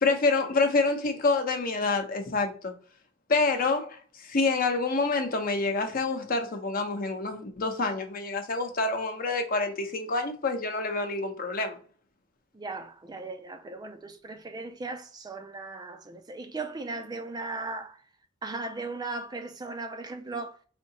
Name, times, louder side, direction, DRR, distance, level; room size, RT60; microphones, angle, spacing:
voice 1, 0.0-2.7 3.3-11.8, left 3 dB, 45° left, 0.7 m, -27 dB
voice 2, 12.5-18.0 18.4-20.6, right 3 dB, 20° right, 0.3 m, -37 dB
4.3 x 2.7 x 2.8 m
head